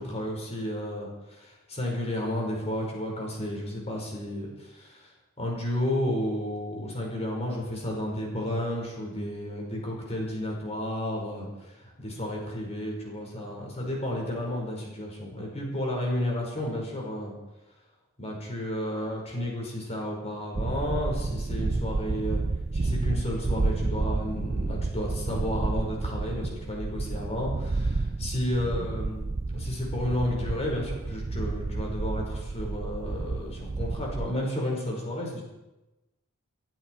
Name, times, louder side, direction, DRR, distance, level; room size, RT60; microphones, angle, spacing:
voice 1, 0.0-5.0 5.4-11.5 12.0-17.4 18.2-22.4 22.7-35.4, left 1 dB, 30° left, -1 dB, 5.4 m, -32 dB
sound 1, 20.5-34.3, right 3 dB, 30° right, 0.4 m, -30 dB
22.5 x 12.5 x 4.8 m, 1.0 s
head